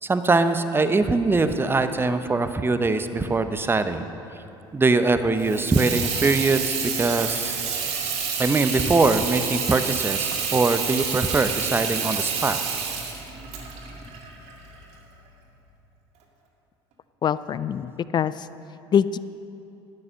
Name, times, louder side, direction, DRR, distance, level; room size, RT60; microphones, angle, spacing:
voice 1, 0.0-4.1 4.7-7.5 8.4-12.6, right 3 dB, 15° right, 9 dB, 0.8 m, -22 dB
Water tap faucet / Sink (filling or washing), 5.4-15.0, right 6 dB, 55° right, 2.0 m, -29 dB
voice 2, 17.2-18.5 18.9-19.2, left 8 dB, 35° left, 16 dB, 0.4 m, -24 dB
12.5 x 8.7 x 6.5 m, 2.8 s
hypercardioid pair, 65°, 13 cm